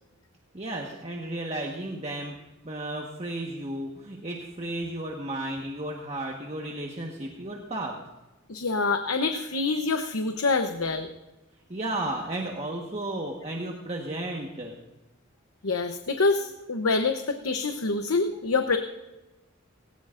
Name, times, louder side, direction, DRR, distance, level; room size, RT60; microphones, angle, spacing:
voice 1, 0.5-2.3 2.6-8.0 11.7-14.7, right 1 dB, 30° right, 0 dB, 1.4 m, -33 dB
voice 2, 8.5-11.1 15.6-18.8, left 3 dB, 85° left, 6 dB, 0.9 m, -26 dB
19.0 x 18.0 x 2.6 m, 1.1 s
head